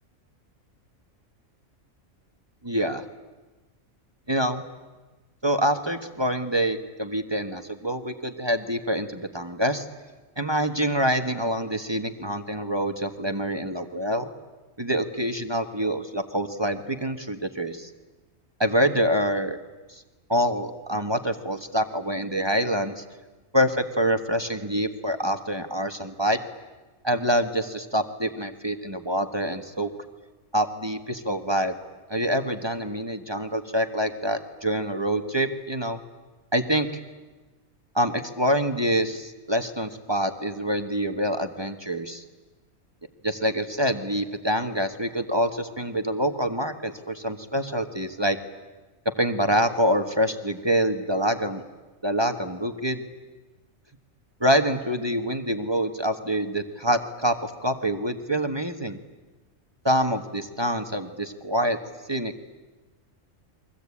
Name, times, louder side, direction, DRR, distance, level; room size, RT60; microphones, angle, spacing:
voice 1, 2.6-3.0 4.3-4.6 5.4-9.9 10.4-14.3 14.8-17.9 18.6-19.6 19.9-20.0 20.3-23.0 23.5-26.4 27.0-29.9 30.5-31.7 32.1-36.0 36.5-37.0 37.9-42.2 43.2-48.4 49.2-51.6 52.0-53.0 54.4-59.0 59.8-61.8 62.1-62.4, equal, 20° right, 6 dB, 1.4 m, -26 dB
29.5 x 23.5 x 8.6 m, 1.2 s
omnidirectional pair, 1.4 m